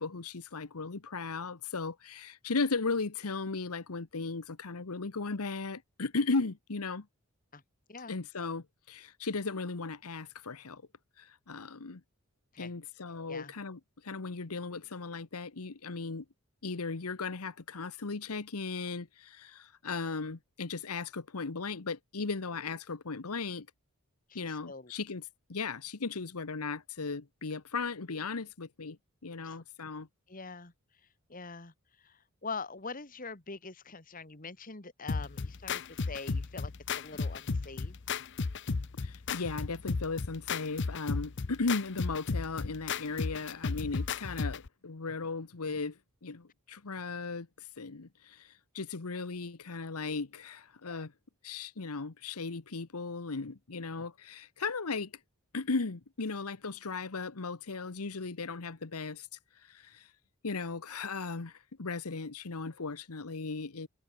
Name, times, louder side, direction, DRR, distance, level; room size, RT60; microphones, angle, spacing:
voice 1, 0.0-7.1 8.1-10.8 11.2-12.0 12.6-16.2 16.6-23.7 24.3-29.0 29.2-30.1 39.0-47.5 47.8-51.1 51.4-55.1 55.5-59.3 59.7-60.1 60.4-63.9, left 4 dB, 85° left, 1.1 m, -36 dB
voice 2, 24.3-24.9 29.4-29.6 30.3-38.0, left 4 dB, 40° left, 1.9 m, -44 dB
sound 1, 35.1-44.7, left 4 dB, 55° left, 0.7 m, -34 dB
head